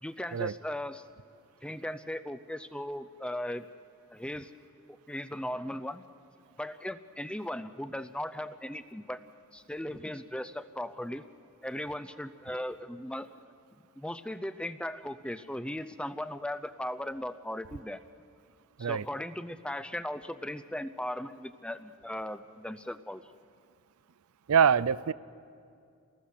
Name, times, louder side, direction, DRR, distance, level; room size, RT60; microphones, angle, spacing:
voice 1, 0.0-1.0 1.6-3.7 4.1-4.5 5.1-6.0 6.6-9.2 9.5-11.2 11.6-13.3 14.0-18.0 18.8-23.2, left 1 dB, 5° left, 12 dB, 0.5 m, -37 dB
voice 2, 24.5-25.1, right 7 dB, 80° right, 19 dB, 0.5 m, -24 dB
29.0 x 20.0 x 6.6 m, 2.4 s
head